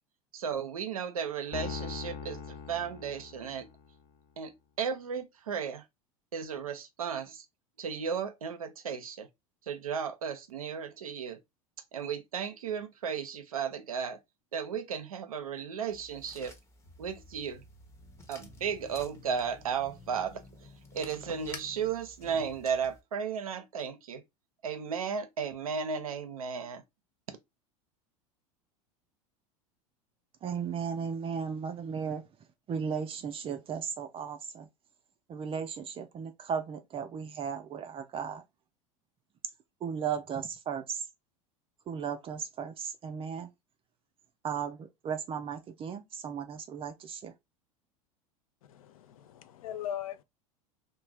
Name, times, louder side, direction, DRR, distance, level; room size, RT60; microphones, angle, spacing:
voice 1, 0.3-3.7 4.4-5.8 6.3-7.5 7.8-9.3 9.7-11.4 11.9-14.2 14.5-16.5 17.0-17.6 18.3-20.4 20.9-24.2 24.6-26.8 27.3-27.4, right 7 dB, 90° right, 0.5 m, -35 dB
Piano, 1.5-4.0, left 6 dB, 55° left, 0.9 m, -41 dB
sound 1, 15.9-23.0, left 2 dB, 15° left, 0.7 m, -53 dB
sound 2, 16.8-22.7, left 3 dB, 35° left, 1.2 m, -55 dB
voice 2, 30.4-32.3 32.7-34.7 35.3-38.4 39.8-41.1 41.9-43.5 44.4-47.3, right 7 dB, 30° right, 0.5 m, -36 dB
voice 3, 48.6-50.2, left 10 dB, 80° left, 0.4 m, -40 dB
2.4 x 2.1 x 3.2 m
hypercardioid pair, 85°, 18 cm